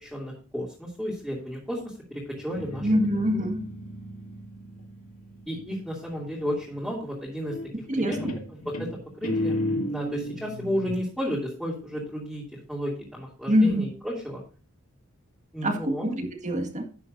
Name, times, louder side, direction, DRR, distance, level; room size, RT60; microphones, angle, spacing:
voice 1, 0.0-2.9 5.5-7.5 7.9-8.2 8.8-8.9 9.2-9.6 9.9-12.4 12.7-14.4 15.5-16.1, equal, ahead, -7 dB, 2.9 m, -32 dB
Guitar, 2.3-5.9 7.5-7.9 8.1-11.1, left 1 dB, 90° left, 2.0 m, -33 dB
voice 2, 2.8-3.7 7.9-8.3 13.5-13.9 15.6-16.8, equal, 35° right, 4 dB, 1.8 m, -24 dB
12.0 x 9.4 x 2.7 m, 0.37 s
head